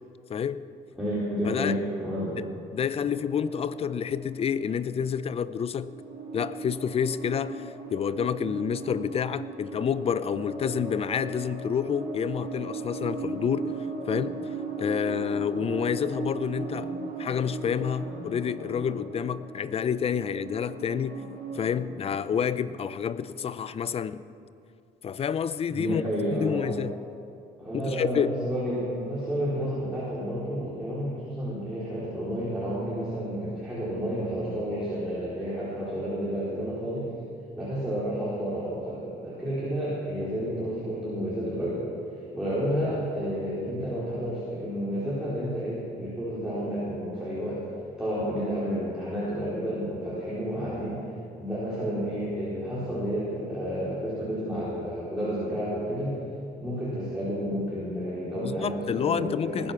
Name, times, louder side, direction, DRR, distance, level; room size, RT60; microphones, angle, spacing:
voice 1, 0.3-0.6 1.5-1.8 2.4-5.9 6.3-13.7 14.1-14.4 14.8-16.9 17.2-21.2 21.5-24.2 25.0-26.0 26.3-26.9 27.7-28.4 58.4-59.7, left 7 dB, 35° left, 15 dB, 0.5 m, -29 dB
voice 2, 1.0-2.4 3.0-3.1 8.5-8.6 13.2-13.3 14.1-14.3 16.6-16.9 17.2-17.4 18.0-19.0 20.8-21.7 25.7-26.7 27.6-37.1 37.5-41.9 42.3-47.6 48.0-51.0 51.4-56.2 56.6-59.7, equal, 5° right, -10 dB, 4.2 m, -31 dB
sound 1, 3.3-5.3 5.7-21.7, right 4 dB, 60° right, 3.3 m, -38 dB
19.5 x 9.8 x 5.9 m, 2.6 s
cardioid pair, 110°, 17 cm